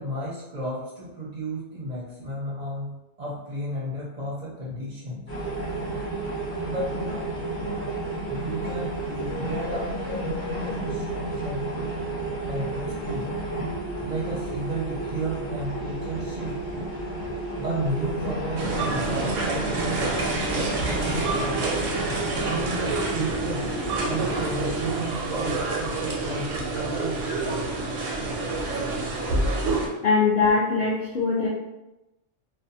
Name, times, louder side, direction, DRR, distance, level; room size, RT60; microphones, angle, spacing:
voice 1, 0.0-5.2 6.6-7.3 8.3-11.9 12.4-13.3 14.0-17.3 17.6-21.7 22.4-23.7 24.0-27.2, right 1 dB, 45° right, -6 dB, 0.5 m, -33 dB
sound 1, 5.3-24.9, right 2 dB, 15° left, 0.7 m, -31 dB
sound 2, 18.6-29.9, right 3 dB, 80° right, 0.9 m, -28 dB
voice 2, 30.0-31.5, left 4 dB, 60° left, -5 dB, 0.6 m, -21 dB
2.6 x 2.1 x 2.6 m, 0.96 s
omnidirectional pair, 1.3 m